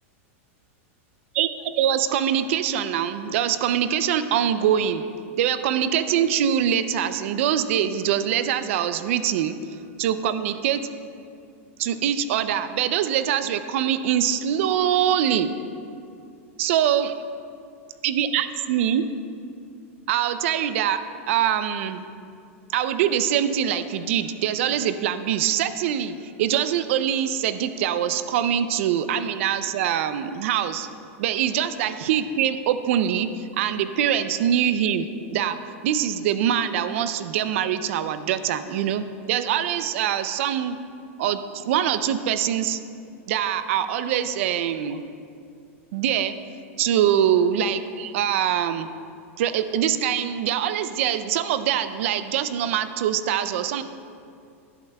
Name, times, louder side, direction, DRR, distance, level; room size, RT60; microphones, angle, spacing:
voice 1, 1.8-5.0 5.4-9.5 10.0-10.8 11.8-15.5 16.6-17.1 18.0-19.0 20.1-21.0 21.3-22.0 22.7-30.9 31.2-35.6 35.8-40.8 41.2-42.8 43.3-45.0 45.9-46.3 46.8-48.9 49.4-53.8, right 9 dB, 65° right, 12 dB, 0.5 m, -23 dB
11.5 x 11.0 x 2.3 m, 2.4 s
supercardioid pair, 140°, 7 cm